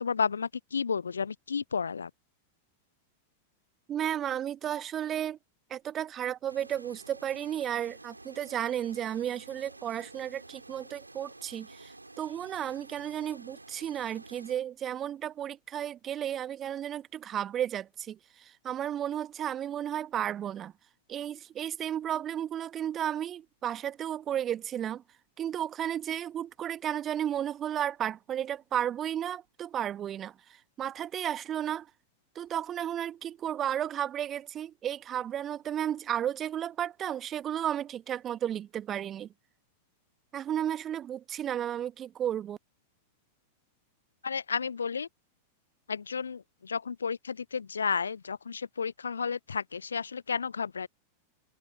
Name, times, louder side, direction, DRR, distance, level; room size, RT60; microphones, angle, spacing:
voice 1, 0.0-2.1 44.2-45.1 45.9-50.9, left 6 dB, 75° left, 0.7 m, -32 dB
voice 2, 3.9-5.4 5.7-20.7 21.1-25.0 25.4-31.9 32.3-39.3 40.3-42.6, right 10 dB, 30° right, 1.4 m, -33 dB
sound 1, 6.5-14.6, right 2 dB, 85° right, 4.4 m, -50 dB
open air
figure-of-eight pair, 90°, 0 cm